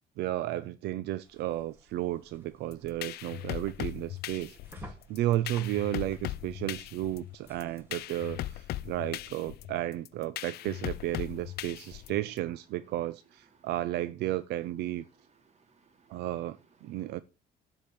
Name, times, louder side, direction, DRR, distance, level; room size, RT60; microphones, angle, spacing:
voice 1, 0.2-15.0 16.1-17.2, right 14 dB, 80° right, 0.7 m, -33 dB
sound 1, 1.2-8.6, right 1 dB, 15° right, 3.3 m, -54 dB
sound 2, 2.7-12.4, left 14 dB, 70° left, 0.6 m, -39 dB
voice 2, 15.1-16.3 16.8-17.2, right 5 dB, 40° right, 2.7 m, -65 dB
12.0 x 5.1 x 8.7 m
cardioid pair, 110°, 17 cm